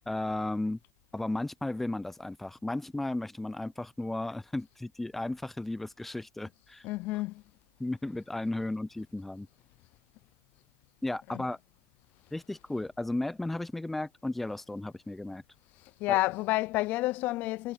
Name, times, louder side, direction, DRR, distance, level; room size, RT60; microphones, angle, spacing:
voice 1, 0.1-0.8 1.1-6.8 7.8-9.5 11.0-11.6 12.3-15.4 16.1-16.2, left 2 dB, 5° left, 0.6 m, -34 dB
voice 2, 6.8-7.4 11.3-11.4 15.8-17.7, left 19 dB, 40° left, 0.6 m, -30 dB
hypercardioid pair, 135°, 5 cm